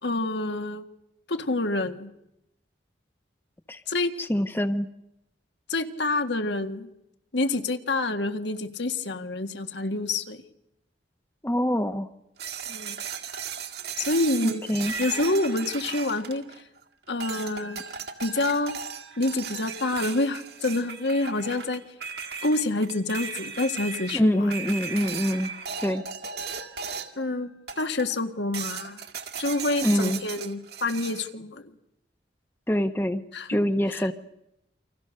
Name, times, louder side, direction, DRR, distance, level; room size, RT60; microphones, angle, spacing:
voice 1, 0.0-0.8 1.3-2.1 3.9-4.1 5.7-6.9 7.3-10.4 12.7-13.0 14.0-14.6 15.0-16.4 17.1-17.8 18.2-18.8 19.2-21.8 22.4-24.5 27.2-27.5 27.8-29.0 29.4-31.7 33.3-33.5 33.9-34.1, left 2 dB, 75° left, 7 dB, 1.8 m, -27 dB
voice 2, 4.3-4.9 11.4-12.1 14.4-14.9 24.1-25.5 25.8-26.0 29.8-30.2 32.7-33.2 33.5-34.1, equal, 10° left, 10 dB, 0.9 m, -25 dB
sound 1, 12.4-16.8 17.2-27.3 27.7-28.2 28.5-31.3, right 6 dB, 60° right, 1.9 m, -36 dB
29.0 x 25.5 x 6.6 m, 0.85 s
head